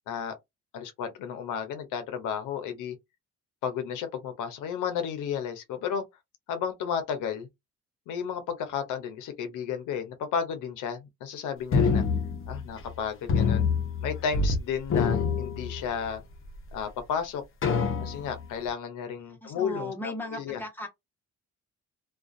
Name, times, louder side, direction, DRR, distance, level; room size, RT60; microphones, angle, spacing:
voice 1, 0.7-3.0 3.6-6.0 6.5-7.5 8.1-12.0 12.5-13.7 14.0-16.2 16.7-17.4 18.0-20.6, left 7 dB, 85° left, 0.7 m, -33 dB
sound 1, 11.7-13.0 13.3-14.6 14.8-16.2 16.7-16.8 17.6-18.5, left 5 dB, 45° left, 0.7 m, -26 dB
voice 2, 19.4-20.9, left 1 dB, 5° left, 1.1 m, -36 dB
2.4 x 2.3 x 2.5 m
cardioid pair, 90°, 30 cm